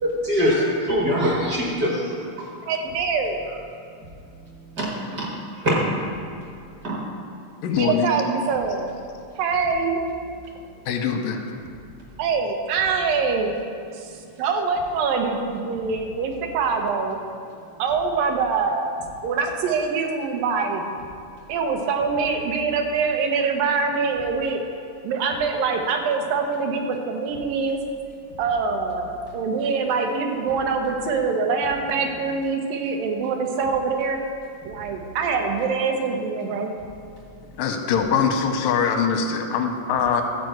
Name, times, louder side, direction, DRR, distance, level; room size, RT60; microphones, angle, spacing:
voice 1, 0.0-2.1 4.8-4.9 5.1-5.3 5.6-5.8 6.8-7.0, equal, 55° right, -3 dB, 1.1 m, -22 dB
voice 2, 2.6-3.4 7.8-8.9 9.4-10.0 12.2-13.5 13.9-14.1 14.4-17.2 17.8-18.8 19.2-20.8 21.5-24.6 25.0-27.8 28.4-34.2 34.6-36.7, right 5 dB, 80° right, 3 dB, 2.7 m, -24 dB
voice 3, 7.6-8.1 10.9-11.4 37.6-40.2, left 6 dB, 90° left, 5 dB, 2.5 m, -22 dB
12.5 x 4.9 x 7.8 m, 2.4 s
omnidirectional pair, 3.9 m